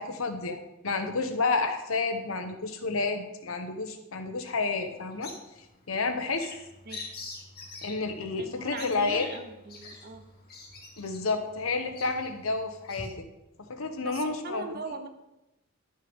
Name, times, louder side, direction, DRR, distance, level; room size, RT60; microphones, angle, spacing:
voice 1, 0.0-5.3 5.9-6.5 7.8-9.3 11.0-13.3 13.7-14.6, left 3 dB, 75° left, 6 dB, 1.0 m, -30 dB
Bird vocalization bird call bird song, 4.8-13.1, left 3 dB, 50° left, 2.0 m, -46 dB
voice 2, 8.4-10.2 14.0-15.1, right 3 dB, 50° right, 7 dB, 0.8 m, -40 dB
11.0 x 5.5 x 3.6 m, 0.94 s
head